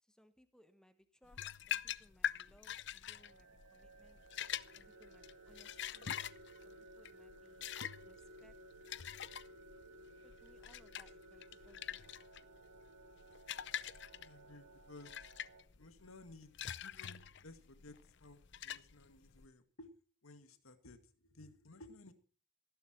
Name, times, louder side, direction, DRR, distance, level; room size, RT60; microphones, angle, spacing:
voice 1, 0.0-4.2 4.8-6.1 6.6-8.6 10.2-12.2, equal, 5° left, 10 dB, 1.2 m, -68 dB
sound 1, 1.3-19.5, left 10 dB, 55° left, 0.6 m, -45 dB
sound 2, 3.1-15.6, right 1 dB, 85° right, 2.6 m, -58 dB
voice 2, 14.2-15.1 15.7-19.9 20.2-22.1, left 2 dB, 85° left, 9 dB, 2.1 m, -57 dB
16.5 x 11.5 x 4.5 m, 0.41 s
head